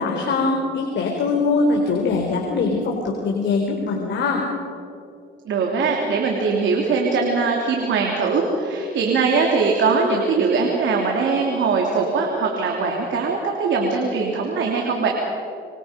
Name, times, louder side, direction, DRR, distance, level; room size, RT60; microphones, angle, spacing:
voice 1, 0.0-4.5, left 3 dB, 65° left, 1 dB, 3.9 m, -22 dB
voice 2, 5.4-15.1, right 4 dB, 70° right, 0 dB, 3.3 m, -21 dB
26.0 x 25.5 x 5.3 m, 2.5 s
cardioid pair, 90°, 20 cm